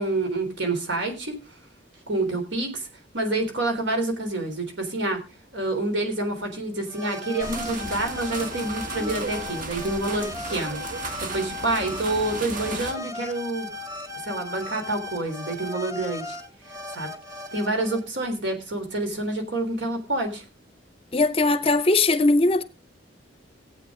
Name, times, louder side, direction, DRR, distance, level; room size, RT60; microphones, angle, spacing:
voice 1, 0.0-1.3 2.1-2.9 3.1-5.2 5.5-10.8 11.2-13.7 14.2-16.4 16.9-17.1 17.5-20.4, right 2 dB, 70° right, 3.7 m, -27 dB
sound 1, 6.9-18.0, left 2 dB, 20° right, 1.5 m, -37 dB
sound 2, 7.4-12.9, right 3 dB, 45° right, 1.5 m, -35 dB
voice 2, 21.1-22.6, left 2 dB, 30° left, 0.7 m, -20 dB
17.0 x 8.7 x 3.7 m
head